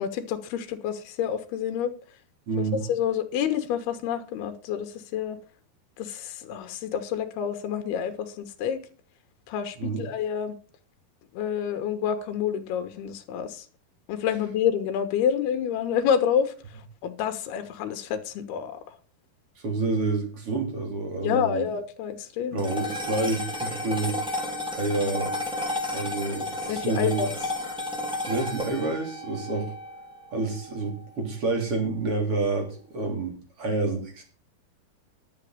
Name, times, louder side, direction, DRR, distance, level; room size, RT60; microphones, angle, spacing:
voice 1, 0.0-1.9 2.6-5.4 6.0-8.8 9.5-10.5 11.3-13.6 14.1-16.5 17.0-18.8 21.2-22.6 26.7-27.3, left 8 dB, 85° left, 9 dB, 3.3 m, -28 dB
voice 2, 2.5-2.8 9.8-10.0 19.6-21.7 22.5-24.2 24.7-25.3 25.9-27.2 28.2-29.7 30.3-34.2, right 3 dB, 35° right, 3 dB, 3.9 m, -28 dB
sound 1, 22.6-31.1, left 1 dB, ahead, 2.3 m, -32 dB
11.5 x 7.8 x 6.6 m, 0.38 s
omnidirectional pair, 4.5 m